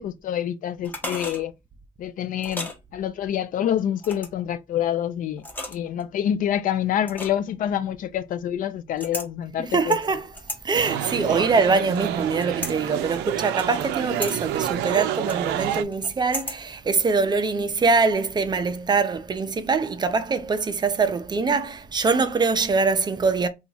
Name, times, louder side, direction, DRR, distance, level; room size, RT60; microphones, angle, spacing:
voice 1, 0.0-1.5 2.0-5.4 5.7-10.0, left 10 dB, 55° left, 0.4 m, -27 dB
sound 1, 0.8-1.4 2.4-2.8 4.0-4.4 5.4-6.0 7.1-7.5 9.0-9.3 9.9-10.6 11.1-12.0 12.4-12.8 13.6-13.9 14.2-14.3 15.3-16.6 16.9-17.0, left 1 dB, 10° left, 0.8 m, -35 dB
voice 2, 9.6-10.3 10.6-23.5, right 4 dB, 25° right, 0.5 m, -23 dB
sound 2, 10.7-15.8, right 11 dB, 80° right, 0.4 m, -28 dB
2.9 x 2.4 x 4.1 m
cardioid pair, 110°, 17 cm